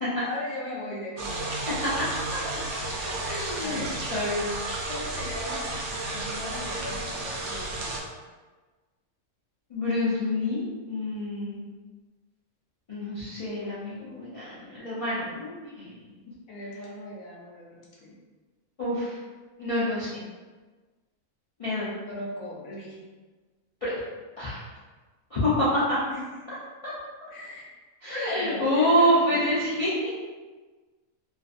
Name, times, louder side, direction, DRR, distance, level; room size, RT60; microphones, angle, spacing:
voice 1, 0.2-1.6 2.4-2.7 3.2-4.0 4.9-8.0 16.5-18.1 22.1-23.0 26.1-26.2 27.3-27.7 28.1-29.5, left 2 dB, 75° left, -3 dB, 1.1 m, -38 dB
sound 1, 1.2-8.0, right 2 dB, 65° right, 0.8 m, -32 dB
voice 2, 1.7-2.1 3.2-3.9 4.1-4.4 9.7-11.6 12.9-16.0 18.8-19.2 19.6-20.2 21.6-21.9 23.8-23.9 24.4-24.6 25.3-26.0 26.8-26.9 27.2-27.3 28.0-30.1, equal, 50° left, -11 dB, 0.4 m, -27 dB
2.5 x 2.4 x 2.4 m, 1.3 s
omnidirectional pair, 1.5 m